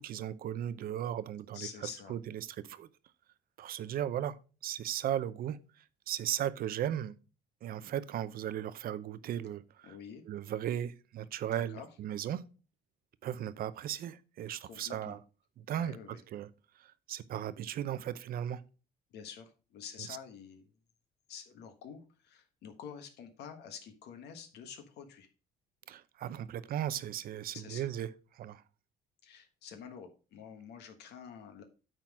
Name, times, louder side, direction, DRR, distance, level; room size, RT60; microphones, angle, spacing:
voice 1, 0.0-2.9 3.6-4.4 4.6-7.1 7.6-10.0 10.3-12.4 13.2-15.2 15.6-16.5 16.8-18.6 20.1-20.2 25.9-28.1 28.3-28.6, right 10 dB, 60° right, 0.6 m, -36 dB
voice 2, 1.5-2.2 9.8-10.2 11.5-11.9 14.6-15.2 15.8-16.2 19.1-20.7 21.3-25.3 27.5-27.8 29.2-31.6, left 7 dB, 75° left, 1.4 m, -48 dB
8.8 x 3.9 x 6.0 m
cardioid pair, 105°, 17 cm